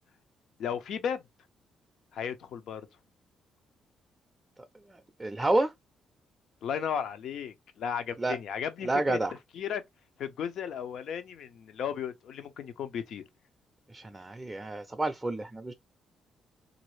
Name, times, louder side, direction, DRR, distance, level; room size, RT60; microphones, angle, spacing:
voice 1, 0.6-1.2 2.1-2.8 6.6-9.2 9.5-9.8 10.2-13.2, left 8 dB, 75° left, 0.6 m, -35 dB
voice 2, 4.9-5.7 8.2-8.4 8.8-9.3 13.9-15.7, right 2 dB, 15° right, 0.4 m, -29 dB
3.1 x 2.6 x 3.1 m
cardioid pair, 90°, 0 cm